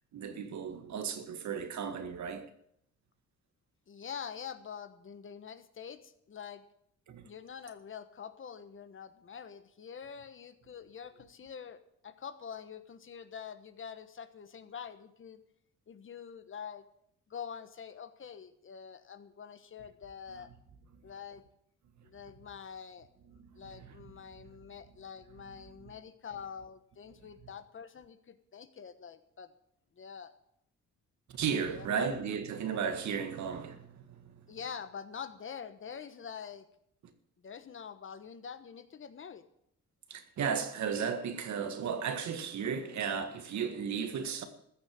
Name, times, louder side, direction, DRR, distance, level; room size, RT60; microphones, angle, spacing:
voice 1, 0.1-2.5 7.1-7.3 23.3-24.0 31.3-34.5 40.1-44.5, right 6 dB, 65° right, 1.8 m, -35 dB
voice 2, 3.9-6.6 7.2-15.4 15.9-16.8 17.3-20.5 21.0-21.4 22.0-23.1 23.5-29.5 30.0-30.3 31.7-32.1 34.5-36.7 37.4-39.4, left 7 dB, 40° left, 1.2 m, -45 dB
14.5 x 6.6 x 8.7 m
cardioid pair, 90°, 30 cm